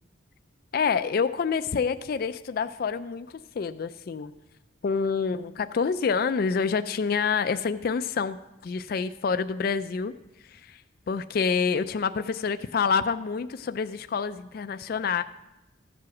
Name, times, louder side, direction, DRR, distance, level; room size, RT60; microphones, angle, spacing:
voice 1, 0.7-4.3 4.8-10.1 10.4-15.2, left 5 dB, 50° left, 11 dB, 0.3 m, -27 dB
14.0 x 7.6 x 5.8 m, 0.96 s
head